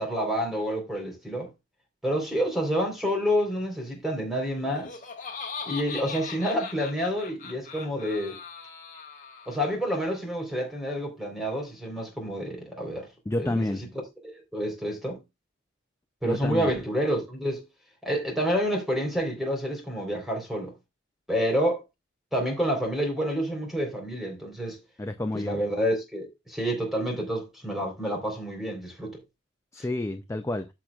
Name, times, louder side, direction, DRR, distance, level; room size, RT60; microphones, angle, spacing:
voice 1, 0.0-1.5 2.0-4.9 5.7-8.3 9.5-13.1 13.4-13.8 14.2-15.2 16.2-17.6 18.0-20.7 21.3-21.8 22.3-24.8 25.3-29.1, equal, ahead, 3.8 m, -28 dB
Laughter, 4.5-9.8, left 5 dB, 40° left, 1.9 m, -40 dB
voice 2, 13.3-13.8 16.2-16.7 25.0-25.6 29.7-30.7, left 1 dB, 15° left, 0.4 m, -29 dB
14.5 x 5.9 x 2.4 m
head